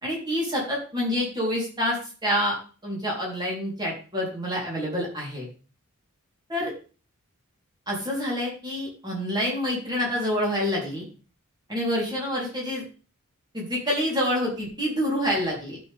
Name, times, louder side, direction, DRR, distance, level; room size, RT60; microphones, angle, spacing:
voice 1, 0.0-2.6 2.8-5.5 6.5-6.7 7.9-11.1 11.7-12.8 13.5-15.8, equal, 20° right, -3 dB, 3.7 m, -27 dB
12.5 x 6.4 x 3.6 m, 0.36 s
head